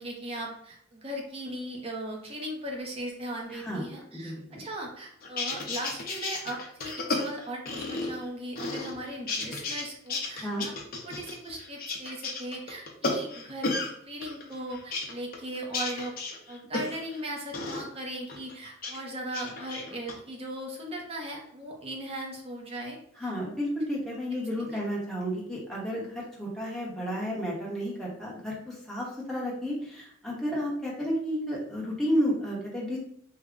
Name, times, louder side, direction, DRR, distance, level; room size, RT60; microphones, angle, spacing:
voice 1, 0.0-10.7 11.0-16.2 16.5-23.3 24.6-24.8, right 1 dB, 30° right, 0 dB, 0.7 m, -38 dB
voice 2, 3.5-3.9 4.2-4.6 10.4-10.7 23.2-33.0, equal, ahead, -5 dB, 0.9 m, -32 dB
sound 1, 5.2-8.3 8.6-9.8 10.1-13.9 14.2-17.2 17.5-17.8 18.3-19.0 19.3-20.1, left 3 dB, 45° left, 0.6 m, -33 dB
3.3 x 2.1 x 3.7 m, 0.67 s
head